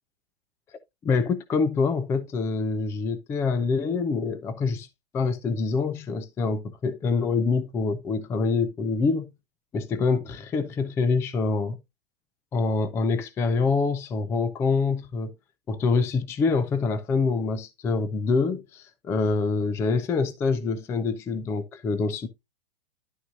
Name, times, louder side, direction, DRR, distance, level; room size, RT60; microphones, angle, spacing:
voice 1, 0.7-4.9 5.1-9.3 9.7-11.8 12.5-15.3 15.7-22.3, left 4 dB, 10° left, 0.4 m, -25 dB
11.0 x 5.9 x 2.6 m
hypercardioid pair, 140°, 29 cm